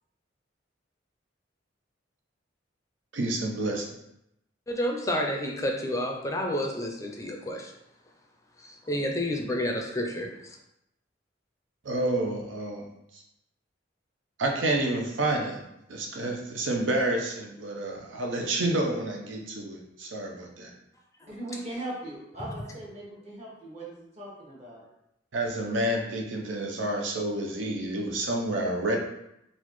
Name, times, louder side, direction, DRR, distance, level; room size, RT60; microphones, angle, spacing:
voice 1, 3.1-3.9 11.8-12.9 13.1-13.2 14.4-20.7 25.3-29.0, right 1 dB, 90° right, 1 dB, 0.6 m, -29 dB
voice 2, 4.7-7.7 8.6-10.6, left 1 dB, 15° left, 1 dB, 0.4 m, -30 dB
voice 3, 21.3-24.9, right 1 dB, 35° right, -5 dB, 1.2 m, -39 dB
3.9 x 2.4 x 3.0 m, 0.82 s
head